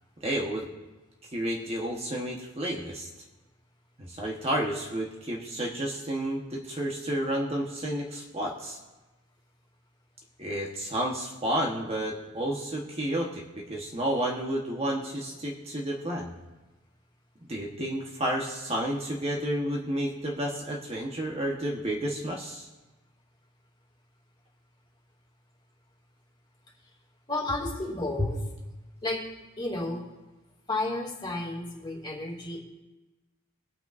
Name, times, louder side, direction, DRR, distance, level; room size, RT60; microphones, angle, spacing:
voice 1, 0.2-0.7 1.3-3.1 4.0-8.8 10.4-16.3 17.5-22.7 28.2-28.3, right 1 dB, 30° right, -1 dB, 1.3 m, -31 dB
voice 2, 27.3-28.4 29.0-29.2 29.6-30.0 30.7-32.6, left 2 dB, 25° left, -2 dB, 2.6 m, -32 dB
22.5 x 9.0 x 2.6 m, 1.1 s
head